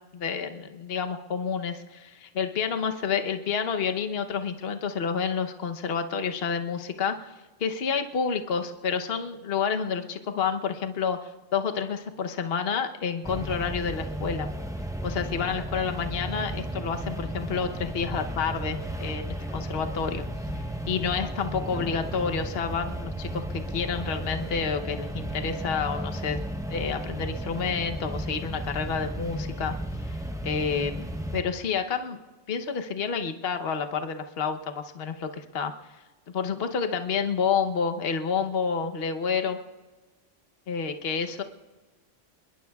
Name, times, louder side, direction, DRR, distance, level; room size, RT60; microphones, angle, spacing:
voice 1, 0.1-7.3 7.6-14.5 15.0-20.2 20.5-26.4 26.7-29.7 30.0-30.2 30.4-31.1 31.3-32.2 32.5-35.7 36.3-39.6 40.7-41.4, left 6 dB, 55° left, 6 dB, 1.1 m, -29 dB
sound 1, 13.2-31.4, right 1 dB, 5° right, 0.6 m, -34 dB
25.0 x 21.5 x 2.3 m, 1.2 s
omnidirectional pair, 1.3 m